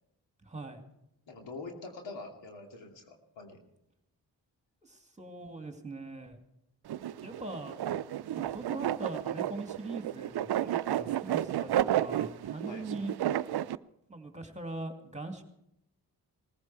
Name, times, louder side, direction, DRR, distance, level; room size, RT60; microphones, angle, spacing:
voice 1, 0.4-0.8 4.8-6.4 7.2-7.8 8.3-11.7 12.0-13.1 14.1-15.4, right 2 dB, 15° right, 5 dB, 2.5 m, -41 dB
voice 2, 1.3-3.6 12.7-12.9, left 3 dB, 75° left, 2 dB, 2.7 m, -44 dB
sound 1, 6.9-13.8, right 12 dB, 60° right, 0.6 m, -32 dB
19.5 x 14.5 x 4.7 m, 0.81 s
supercardioid pair, 45°, 44 cm